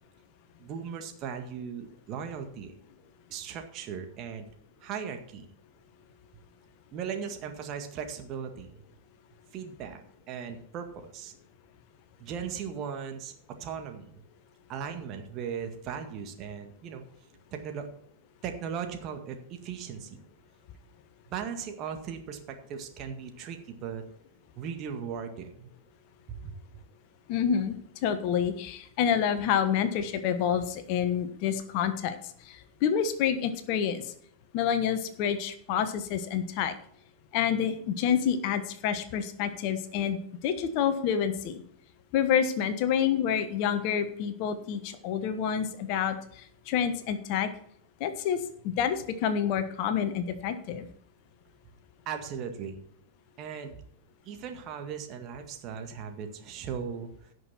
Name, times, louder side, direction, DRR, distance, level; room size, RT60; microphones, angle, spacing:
voice 1, 0.6-2.7 3.3-4.5 4.8-5.5 6.9-8.7 9.5-11.3 12.2-13.3 13.6-14.2 14.7-17.0 17.5-17.9 18.4-20.2 21.3-24.0 24.6-25.7 26.3-26.5 52.1-52.8 53.4-53.8 54.2-57.1, right 7 dB, 35° right, 5 dB, 1.9 m, -38 dB
voice 2, 27.3-27.7 28.0-32.2 32.5-34.0 34.5-36.7 37.3-41.6 42.1-46.2 46.7-47.5 48.0-48.4 48.6-50.9, left 8 dB, 45° left, 10 dB, 1.2 m, -28 dB
17.0 x 6.5 x 4.3 m, 0.65 s
figure-of-eight pair, 90°, 0 cm